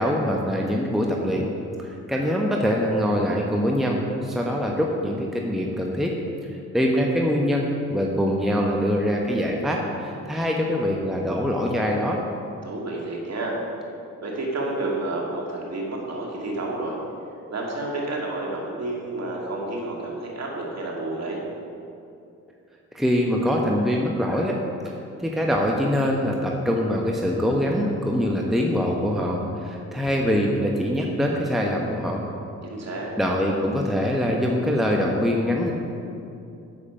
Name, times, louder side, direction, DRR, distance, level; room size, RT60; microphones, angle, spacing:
voice 1, 0.0-1.5 1.8-6.1 6.5-12.2 22.9-24.6 24.8-24.9 25.2-32.2 33.2-35.7, equal, ahead, 0 dB, 1.0 m, -24 dB
voice 2, 12.6-13.6 14.2-16.9 17.5-21.4 32.6-33.1, right 2 dB, 40° right, -2 dB, 2.4 m, -30 dB
8.3 x 7.6 x 5.1 m, 2.6 s
hypercardioid pair, 40°, 39 cm